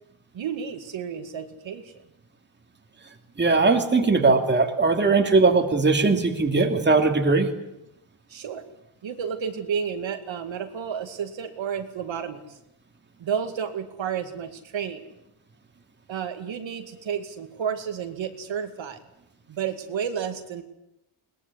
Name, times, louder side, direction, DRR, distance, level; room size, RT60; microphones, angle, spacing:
voice 1, 0.3-1.9 8.3-8.6 9.0-12.4 13.2-15.0 16.1-19.0 19.5-20.6, right 7 dB, 65° right, 6 dB, 2.5 m, -31 dB
voice 2, 3.4-7.5, right 3 dB, 20° right, 4 dB, 2.7 m, -20 dB
21.5 x 20.5 x 9.9 m, 0.83 s
cardioid pair, 135°, 49 cm